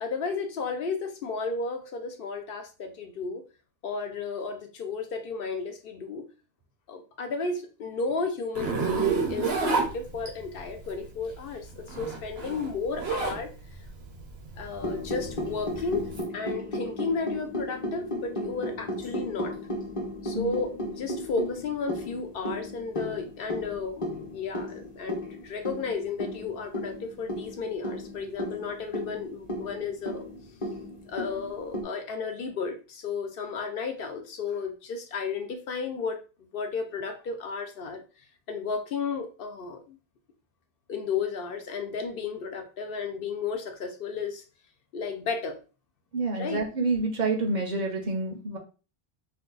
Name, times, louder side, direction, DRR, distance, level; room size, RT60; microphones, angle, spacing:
voice 1, 0.0-3.4 3.8-6.3 6.9-13.5 14.6-16.1 16.3-19.5 20.2-30.3 31.1-36.2 36.5-38.0 38.5-40.0 40.9-44.4 44.9-45.6 46.3-46.6, left 4 dB, 65° left, 6 dB, 0.7 m, -33 dB
Zipper (clothing), 8.5-10.6 11.7-13.4 13.8-16.2, right 4 dB, 80° right, 1.1 m, -29 dB
sound 1, 14.8-31.8, left 1 dB, 35° left, 0.9 m, -35 dB
voice 2, 46.1-48.6, right 3 dB, 55° right, 3 dB, 0.7 m, -28 dB
2.6 x 2.3 x 3.7 m, 0.34 s
omnidirectional pair, 1.0 m